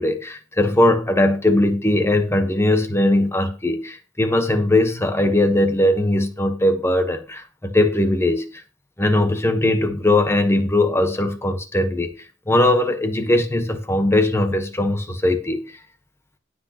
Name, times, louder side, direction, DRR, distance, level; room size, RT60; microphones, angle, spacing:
voice 1, 0.0-8.4 9.0-12.1 12.5-15.6, left 1 dB, 15° left, 1.2 m, -19 dB
18.0 x 6.2 x 2.9 m
head